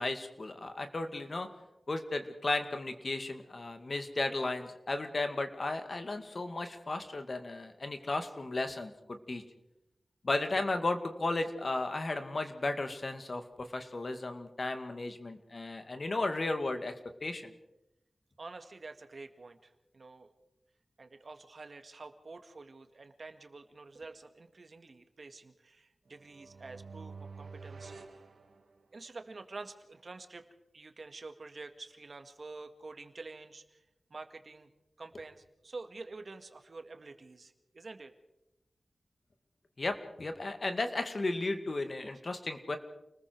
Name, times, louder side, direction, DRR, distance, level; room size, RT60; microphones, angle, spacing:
voice 1, 0.0-1.5 1.9-9.4 10.2-16.9 17.2-17.5 39.8-42.8, left 2 dB, 50° left, 7 dB, 2.2 m, -34 dB
voice 2, 18.4-20.3 21.0-27.9 28.9-30.5 30.7-33.9 34.1-34.7 35.0-38.1 42.1-42.2, right 3 dB, 60° right, 7 dB, 1.9 m, -48 dB
sound 1, 26.1-29.2, right 4 dB, 85° right, 2.2 m, -49 dB
29.5 x 20.0 x 4.7 m, 0.90 s
wide cardioid pair, 85°, 0 cm